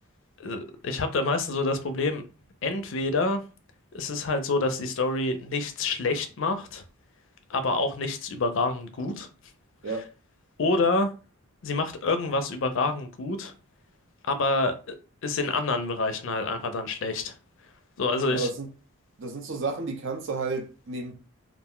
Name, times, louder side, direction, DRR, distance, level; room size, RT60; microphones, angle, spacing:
voice 1, 0.4-2.2 2.6-3.4 3.9-6.8 7.5-9.3 9.9-10.0 10.6-11.1 11.6-13.5 14.2-15.0 15.2-17.3 18.0-18.5, left 3 dB, 60° left, 0.4 m, -27 dB
voice 2, 18.3-18.7 19.2-21.1, right 3 dB, 60° right, 0.6 m, -31 dB
2.4 x 2.1 x 3.6 m
head